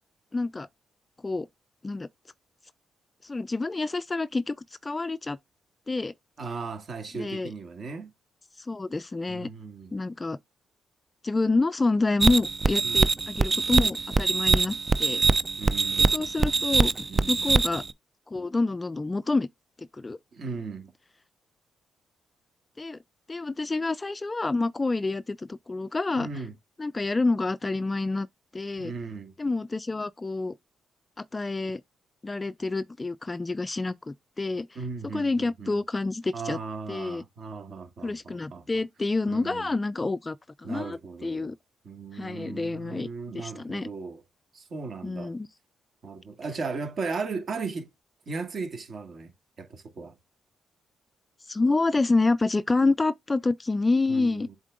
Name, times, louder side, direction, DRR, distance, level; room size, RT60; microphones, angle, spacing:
voice 1, 0.3-0.7 1.2-1.5 1.8-2.1 3.2-4.6 4.8-5.4 5.9-6.1 7.1-7.5 8.7-9.5 9.9-10.4 11.2-15.2 16.0-17.8 18.3-19.5 19.8-20.2 22.8-23.0 23.3-26.3 26.8-28.3 28.5-28.9 29.4-30.6 31.2-31.8 32.2-34.7 35.1-36.6 36.9-37.2 38.0-41.6 42.1-43.1 43.3-43.9 45.0-45.5 51.5-54.5, left 3 dB, 25° left, 0.4 m, -28 dB
voice 2, 6.4-8.1 9.3-9.9 12.8-13.0 15.6-16.3 17.1-17.4 20.3-20.9 26.1-26.5 28.8-29.3 34.8-35.8 36.3-38.7 39.3-39.8 40.6-41.5 41.8-44.2 44.5-45.3 46.0-47.9 48.3-49.3 49.6-50.1 54.1-54.6, right 4 dB, 55° right, 2.2 m, -37 dB
sound 1, 12.2-17.9, right 4 dB, 35° right, 0.4 m, -23 dB
7.4 x 3.8 x 3.7 m
cardioid pair, 70°, 0 cm